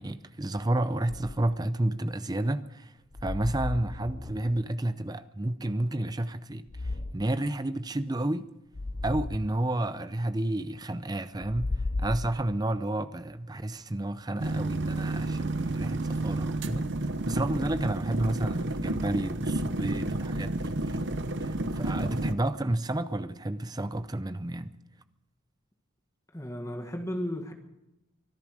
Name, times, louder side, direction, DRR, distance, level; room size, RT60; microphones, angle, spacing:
voice 1, 0.0-2.9 3.2-6.6 7.1-8.5 9.0-11.7 12.0-16.9 17.3-21.0 21.4-24.7, right 1 dB, 20° right, 0.6 m, -31 dB
sound 1, 1.1-1.6 3.1-4.7 6.7-7.3 8.7-9.5 11.4-12.8, left 2 dB, 35° left, 0.5 m, -34 dB
sound 2, 14.4-22.3, right 2 dB, 55° right, 0.9 m, -31 dB
voice 2, 26.3-27.5, equal, 15° left, 1.6 m, -34 dB
24.0 x 11.0 x 5.0 m
head